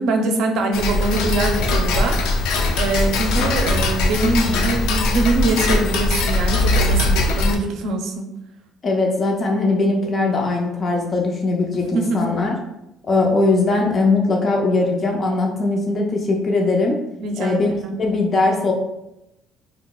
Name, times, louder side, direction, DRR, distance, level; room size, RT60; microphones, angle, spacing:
voice 1, 0.0-8.2 11.9-12.2 17.2-18.0, right 3 dB, 65° right, 3 dB, 0.5 m, -23 dB
Tick-tock, 0.7-7.6, left 2 dB, 90° left, 0.4 m, -20 dB
voice 2, 8.8-12.6 13.1-17.0 17.4-17.7 18.0-18.7, left 3 dB, 25° left, 0 dB, 0.4 m, -20 dB
4.2 x 2.8 x 2.2 m, 0.88 s
cardioid pair, 175°, 0 cm